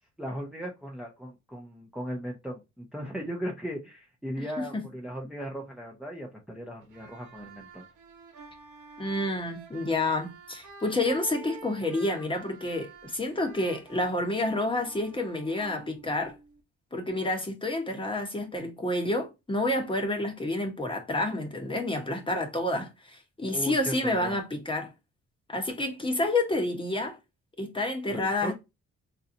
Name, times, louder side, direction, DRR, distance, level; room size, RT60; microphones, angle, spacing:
voice 1, 0.2-7.8 23.5-24.4 28.1-28.5, equal, ahead, 0.8 m, -37 dB
sound 1, 6.8-16.6, right 3 dB, 75° right, 1.0 m, -48 dB
voice 2, 9.0-16.3 16.9-22.9 23.4-24.9 25.5-27.2 27.6-28.5, left 2 dB, 15° left, 1.1 m, -29 dB
3.9 x 2.8 x 2.6 m
cardioid pair, 90°, 30 cm